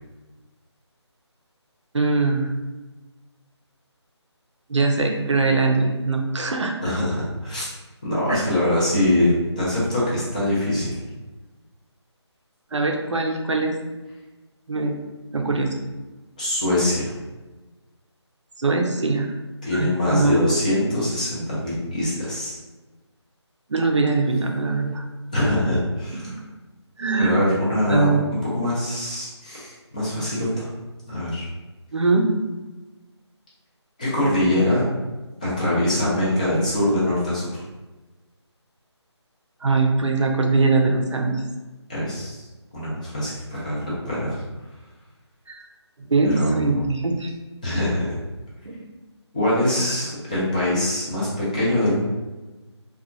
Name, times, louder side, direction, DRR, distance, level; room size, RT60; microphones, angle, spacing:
voice 1, 1.9-2.5 4.7-6.8 8.3-8.4 12.7-13.7 14.7-15.0 15.3-15.7 18.6-19.3 19.7-20.4 23.7-25.0 26.3-26.4 27.0-27.3 27.9-28.2 31.9-32.3 39.6-41.4 43.7-43.8 45.5-45.6 46.1-47.3 48.7-48.8 49.8-49.9, right 3 dB, 80° right, 2 dB, 0.5 m, -22 dB
voice 2, 6.8-7.7 8.0-11.0 16.4-17.1 19.6-22.6 25.3-26.4 27.2-28.1 28.4-30.7 31.1-31.5 34.0-34.8 35.4-37.6 41.9-42.4 42.7-44.3 46.2-46.8 47.6-48.2 49.3-52.0, left 1 dB, 15° left, -8 dB, 0.4 m, -23 dB
2.8 x 2.2 x 2.4 m, 1.2 s
figure-of-eight pair, 155°, 15 cm